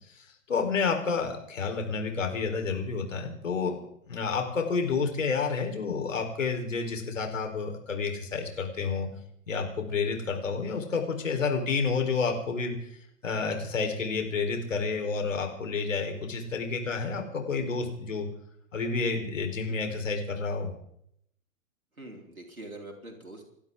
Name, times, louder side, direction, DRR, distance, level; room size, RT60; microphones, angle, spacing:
voice 1, 0.1-3.8 4.1-9.1 9.5-12.8 13.2-18.3 18.7-20.7, left 4 dB, 65° left, 4 dB, 4.1 m, -30 dB
voice 2, 19.7-20.0 22.0-23.4, right 1 dB, 90° right, 0 dB, 4.1 m, -44 dB
29.0 x 12.0 x 3.8 m, 0.70 s
figure-of-eight pair, 110°, 41 cm